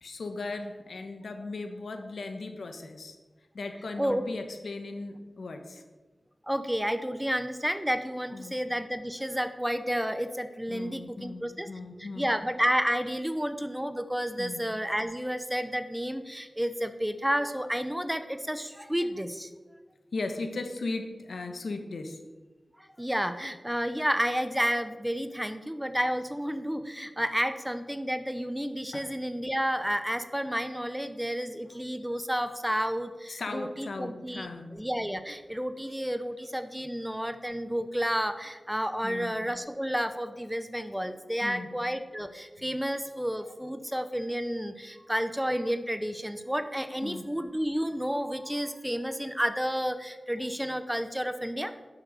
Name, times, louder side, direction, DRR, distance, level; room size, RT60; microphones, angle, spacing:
voice 1, 0.0-3.2 3.5-5.8 8.3-8.6 10.7-12.3 14.4-14.6 20.1-22.2 28.9-29.1 33.3-34.8 39.0-39.4 41.4-41.7 47.0-47.3, left 3 dB, 90° left, 6 dB, 1.2 m, -37 dB
voice 2, 6.4-11.7 12.0-19.5 22.8-51.7, equal, 5° right, 10 dB, 0.7 m, -31 dB
10.5 x 6.6 x 6.5 m, 1.3 s
wide cardioid pair, 95°, 0 cm